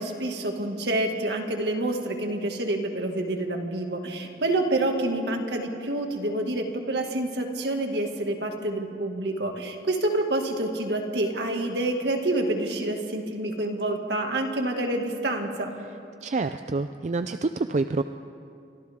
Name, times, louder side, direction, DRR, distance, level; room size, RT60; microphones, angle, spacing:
voice 1, 0.0-15.7, right 1 dB, 70° right, 3 dB, 2.1 m, -28 dB
voice 2, 16.2-18.0, right 3 dB, 40° right, 9 dB, 0.4 m, -27 dB
30.0 x 24.5 x 3.7 m, 2.6 s
head